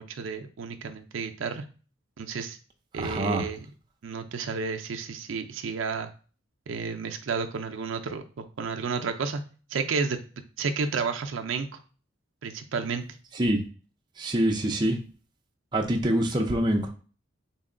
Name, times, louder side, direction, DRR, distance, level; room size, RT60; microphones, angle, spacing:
voice 1, 0.0-1.7 2.2-2.6 2.9-3.7 4.0-6.1 6.7-9.4 9.7-10.2 10.6-11.8 12.4-13.0, right 5 dB, 75° right, 6 dB, 0.4 m, -31 dB
voice 2, 3.0-3.5 13.4-13.6 14.2-15.0 15.7-16.9, right 1 dB, 20° right, 1 dB, 0.4 m, -25 dB
4.0 x 2.2 x 3.7 m, 0.38 s
head